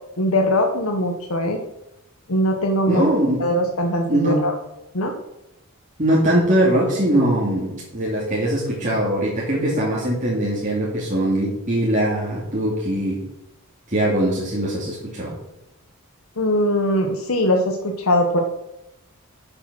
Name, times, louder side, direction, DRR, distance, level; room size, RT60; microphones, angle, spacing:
voice 1, 0.2-1.6 2.3-3.1 3.4-4.5 4.9-5.1 16.4-18.4, left 1 dB, 75° left, 3 dB, 1.2 m, -21 dB
voice 2, 2.9-3.5 4.1-4.4 6.0-13.2 13.9-15.3, right 1 dB, 35° right, -5 dB, 2.6 m, -21 dB
10.0 x 6.9 x 6.2 m, 0.86 s
head